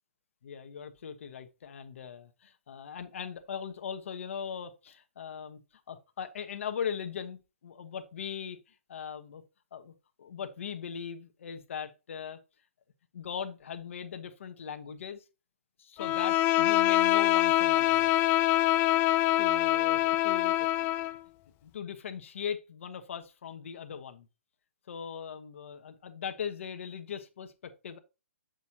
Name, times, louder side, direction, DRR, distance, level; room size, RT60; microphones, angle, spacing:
voice 1, 0.4-5.6 5.9-9.4 9.7-9.9 10.2-12.4 13.1-15.2 15.8-18.1 19.4-20.9 21.6-24.3 24.9-28.0, left 7 dB, 60° left, 1.2 m, -39 dB
Bowed string instrument, 16.0-21.2, left 14 dB, 25° left, 0.4 m, -25 dB
8.2 x 6.3 x 2.8 m
hypercardioid pair, 130°, 8 cm